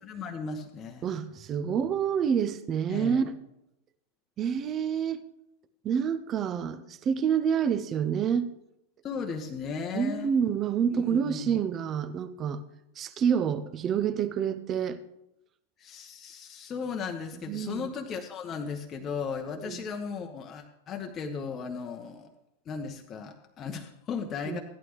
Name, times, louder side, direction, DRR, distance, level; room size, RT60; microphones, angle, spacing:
voice 1, 0.0-1.1 2.9-3.3 9.0-10.3 10.9-11.6 15.8-22.3 22.7-24.6, left 5 dB, 25° left, 4 dB, 0.9 m, -36 dB
voice 2, 1.0-3.2 4.4-5.2 5.8-8.5 9.9-12.6 13.0-15.0 17.5-17.9 19.6-19.8 24.4-24.6, right 7 dB, 30° right, 13 dB, 0.7 m, -28 dB
15.0 x 11.0 x 3.1 m, 0.84 s
figure-of-eight pair, 90°, 0 cm